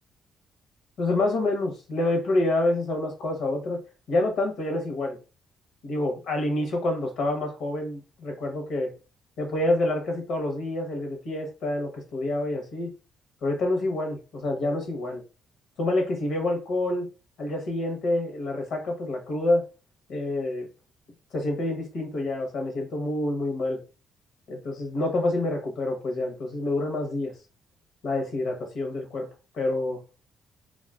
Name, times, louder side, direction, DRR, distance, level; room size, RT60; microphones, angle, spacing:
voice 1, 1.0-3.8 4.1-5.2 5.8-8.9 9.4-12.9 13.4-15.2 15.8-17.1 17.4-19.6 20.1-20.7 21.3-23.8 24.5-27.3 28.0-29.3 29.5-30.0, left 2 dB, 80° left, 0.8 m, -27 dB
2.3 x 2.3 x 2.3 m
cardioid pair, 90°, 0 cm